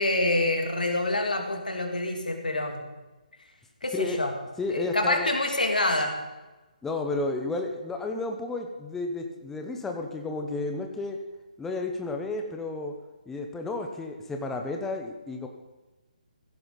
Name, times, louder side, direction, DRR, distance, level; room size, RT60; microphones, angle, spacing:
voice 1, 0.0-2.8 3.8-4.3 4.7-6.2, left 2 dB, 75° left, 3 dB, 2.8 m, -26 dB
voice 2, 4.6-5.3 6.8-11.2 11.6-12.9 13.3-15.5, left 3 dB, 5° left, 3 dB, 0.9 m, -32 dB
15.5 x 11.0 x 4.1 m, 1.1 s
figure-of-eight pair, 140°, 5 cm